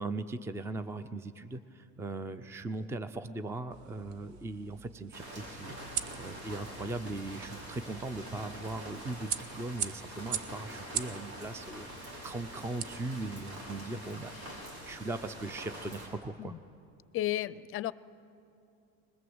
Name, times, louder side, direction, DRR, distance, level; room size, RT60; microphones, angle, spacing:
voice 1, 0.0-16.5, right 2 dB, 10° right, 12 dB, 0.5 m, -39 dB
sound 1, 3.7-13.6, right 8 dB, 60° right, 0.9 m, -42 dB
sound 2, 5.1-16.1, right 1 dB, 85° right, 6.0 m, -45 dB
voice 2, 17.1-17.9, left 14 dB, 40° left, 18 dB, 0.6 m, -33 dB
21.0 x 21.0 x 7.9 m, 2.6 s
supercardioid pair, 125°, 33 cm